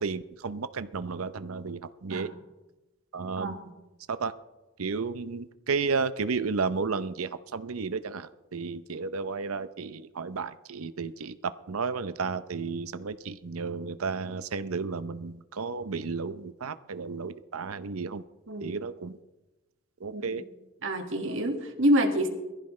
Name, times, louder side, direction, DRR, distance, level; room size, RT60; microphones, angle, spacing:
voice 1, 0.0-2.3 3.1-3.6 4.1-4.3 4.8-11.4 11.7-18.2 18.6-19.2 20.0-20.4, right 4 dB, 90° right, 13 dB, 0.7 m, -33 dB
voice 2, 3.4-3.7 18.5-18.8 20.1-20.4 20.8-22.3, equal, 65° right, 4 dB, 1.9 m, -27 dB
22.0 x 15.0 x 3.2 m, 1.1 s
head